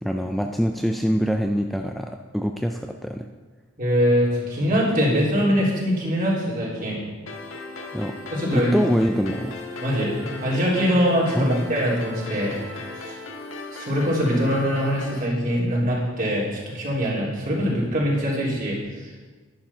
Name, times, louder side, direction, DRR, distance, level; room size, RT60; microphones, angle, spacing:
voice 1, 0.0-3.3 7.9-8.1 8.5-9.5 11.4-11.6, equal, ahead, 4 dB, 0.4 m, -24 dB
voice 2, 3.8-7.1 8.3-8.7 9.8-12.6 13.0-13.1 13.7-19.1, equal, 45° right, -4 dB, 3.6 m, -23 dB
sound 1, 7.3-15.3, left 3 dB, 85° left, 1.6 m, -37 dB
10.5 x 10.5 x 5.7 m, 1.3 s
head